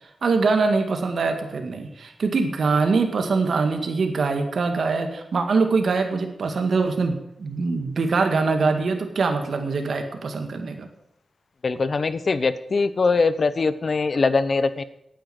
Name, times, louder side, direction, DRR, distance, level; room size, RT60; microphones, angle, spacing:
voice 1, 0.2-10.9, right 4 dB, 75° right, 5 dB, 1.8 m, -23 dB
voice 2, 11.6-14.8, left 4 dB, 55° left, 14 dB, 0.8 m, -22 dB
9.4 x 9.0 x 7.9 m, 0.80 s
cardioid pair, 60°, 0 cm